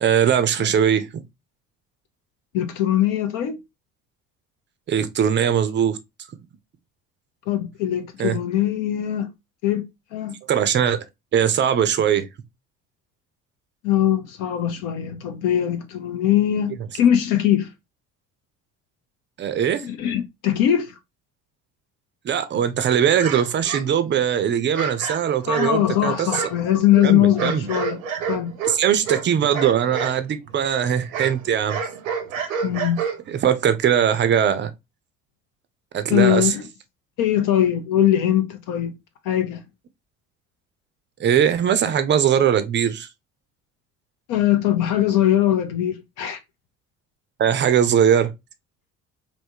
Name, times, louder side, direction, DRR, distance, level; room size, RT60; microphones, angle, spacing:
voice 1, 0.0-1.2 4.9-6.0 8.2-8.4 10.5-11.0 11.3-12.3 19.4-19.9 22.2-26.4 27.0-27.7 28.7-31.8 33.3-34.7 35.9-36.5 41.2-43.1 47.4-48.3, right 8 dB, 30° right, 0.5 m, -20 dB
voice 2, 2.5-3.6 7.5-9.3 9.6-9.8 10.1-10.4 13.8-17.7 19.8-21.0 25.5-28.0 28.3-28.5 32.6-33.0 36.1-36.7 37.2-38.9 39.2-39.6 44.3-46.4, left 11 dB, 50° left, 0.6 m, -21 dB
sound 1, 23.2-24.3 24.7-25.9 26.3-30.2 30.5-33.5, right 6 dB, 80° right, 0.7 m, -29 dB
3.3 x 2.6 x 2.7 m
figure-of-eight pair, 55°, 40 cm